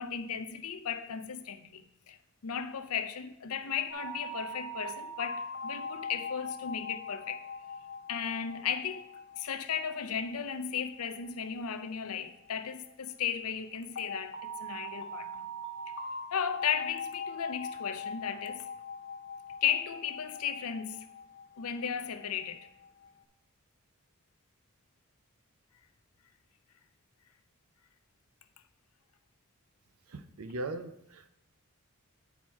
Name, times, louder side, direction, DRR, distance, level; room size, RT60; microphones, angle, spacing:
voice 1, 0.0-2.2 2.4-7.5 8.1-9.1 9.4-15.5 16.3-18.6 19.6-21.1 21.6-22.7, left 8 dB, 85° left, 0.6 m, -35 dB
sound 1, 3.9-12.7 13.9-23.1, left 2 dB, 55° left, 0.9 m, -42 dB
voice 2, 30.1-31.3, right 2 dB, 85° right, 0.6 m, -39 dB
9.1 x 4.3 x 4.6 m
head